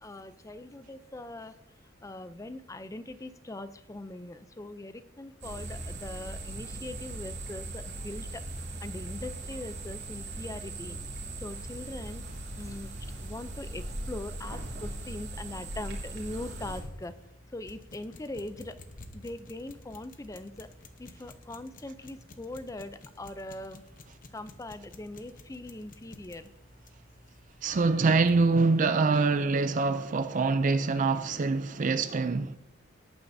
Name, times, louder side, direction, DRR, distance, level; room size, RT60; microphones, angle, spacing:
voice 1, 0.0-1.6 1.8-8.4 8.8-11.0 11.4-12.2 12.6-12.9 13.2-17.1 17.5-18.8 19.1-20.7 21.0-23.8 24.3-26.5, left 2 dB, 15° left, 0.5 m, -41 dB
sound 1, 5.4-16.8, right 2 dB, 55° right, 2.6 m, -39 dB
sound 2, 16.5-28.5, left 2 dB, 40° left, 0.9 m, -52 dB
voice 2, 27.6-32.6, right 4 dB, 40° right, 0.4 m, -25 dB
18.0 x 9.1 x 2.7 m
head